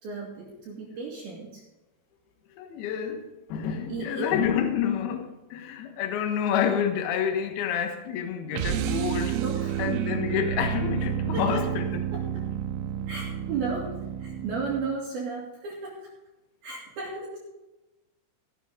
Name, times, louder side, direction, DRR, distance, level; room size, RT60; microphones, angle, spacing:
voice 1, 0.0-1.6 3.9-4.3 8.7-9.0 9.3-10.2 11.3-11.6 12.1-12.4 13.1-16.0 16.6-17.4, right 4 dB, 55° right, -5 dB, 3.9 m, -34 dB
voice 2, 2.6-9.4 9.8-11.9, left 8 dB, 65° left, 5 dB, 2.9 m, -28 dB
sound 1, 8.5-15.0, right 10 dB, 90° right, 3.1 m, -30 dB
16.0 x 11.5 x 3.8 m, 1.1 s
omnidirectional pair, 5.5 m